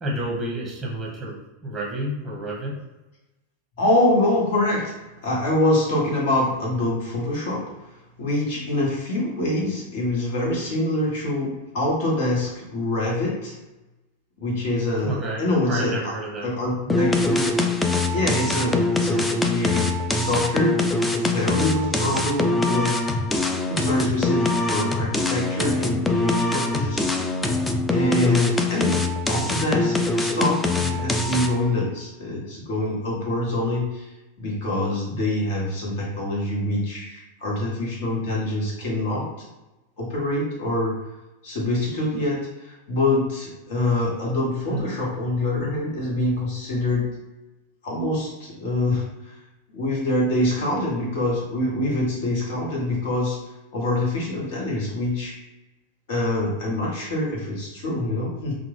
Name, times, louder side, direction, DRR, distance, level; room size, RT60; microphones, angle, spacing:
voice 1, 0.0-2.7 15.0-16.5 16.9-17.0 44.7-44.8, right 1 dB, 10° right, -3 dB, 0.8 m, -30 dB
voice 2, 3.8-4.9 5.2-7.6 8.2-13.5 14.4-16.1 16.4-17.6 17.9-20.8 21.0-22.9 23.7-27.0 27.9-34.1 34.4-39.5 40.0-40.9 41.4-47.0 47.8-49.0 49.7-53.4 53.7-55.3 56.1-58.5, left 1 dB, 50° left, -3 dB, 1.2 m, -25 dB
sound 1, 16.9-31.7, left 2 dB, 10° left, 0.3 m, -23 dB
3.5 x 2.1 x 3.2 m, 1.0 s
figure-of-eight pair, 90°, 0 cm